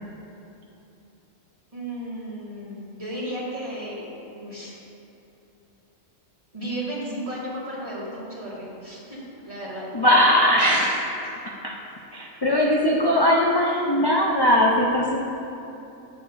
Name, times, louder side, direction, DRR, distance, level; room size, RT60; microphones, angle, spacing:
voice 1, 1.7-4.0 4.3-4.7 6.5-9.9, right 1 dB, 25° right, -7 dB, 2.0 m, -34 dB
voice 2, 9.9-11.3 11.6-11.7 12.1-15.2, left 1 dB, 35° left, -2 dB, 0.4 m, -20 dB
15.0 x 6.8 x 2.6 m, 3.0 s
omnidirectional pair, 1.4 m